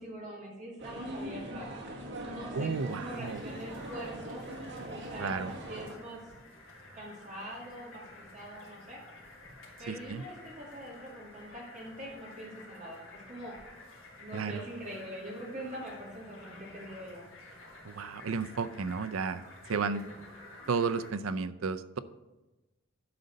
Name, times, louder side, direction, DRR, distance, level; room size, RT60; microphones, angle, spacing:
voice 1, 0.0-1.7 2.2-4.5 4.9-6.2 6.9-9.0 9.8-13.5 14.2-17.3 19.7-20.0, right 1 dB, 40° right, -5 dB, 2.4 m, -43 dB
sound 1, 0.8-6.0, right 1 dB, 60° right, 1.7 m, -41 dB
voice 2, 2.5-3.4 5.2-5.5 9.9-10.2 14.3-14.6 17.8-19.4 19.7-20.0 20.7-22.0, right 5 dB, 80° right, 13 dB, 0.5 m, -33 dB
sound 2, 2.6-21.1, left 2 dB, 75° left, 2.7 m, -52 dB
11.0 x 4.0 x 6.5 m, 1.1 s
head